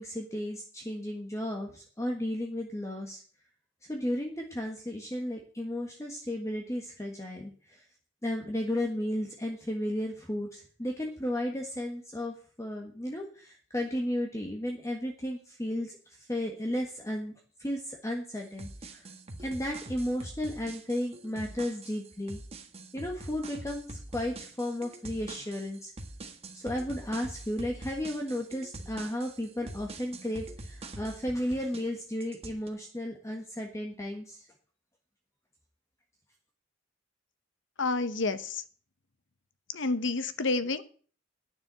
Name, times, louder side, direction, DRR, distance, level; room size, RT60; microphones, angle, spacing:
voice 1, 0.0-3.2 3.9-7.8 8.2-16.0 16.3-17.3 17.6-19.0 19.4-22.4 22.9-25.9 26.5-34.4, left 1 dB, 15° left, 1 dB, 1.5 m, -34 dB
sound 1, 18.4-31.9 32.2-32.7, right 2 dB, 30° right, 1.5 m, -44 dB
voice 2, 37.8-38.6 39.7-40.8, left 3 dB, 65° left, 12 dB, 1.0 m, -29 dB
9.6 x 7.0 x 8.8 m, 0.43 s
head